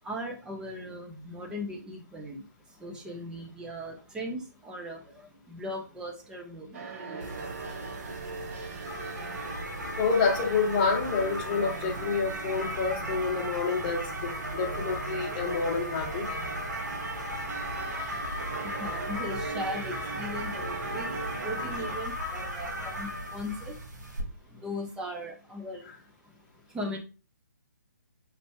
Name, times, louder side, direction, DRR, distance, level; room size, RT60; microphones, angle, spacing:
voice 1, 0.0-7.8 8.6-8.7 18.4-26.1 26.5-27.0, left 1 dB, 5° right, 0.6 m, -39 dB
sound 1, 6.7-22.0, right 4 dB, 50° right, 0.8 m, -40 dB
sound 2, 7.2-24.2, equal, 70° right, 1.4 m, -36 dB
voice 2, 10.0-16.3, left 5 dB, 30° left, 0.9 m, -28 dB
3.2 x 2.7 x 4.3 m
figure-of-eight pair, 140°, 10 cm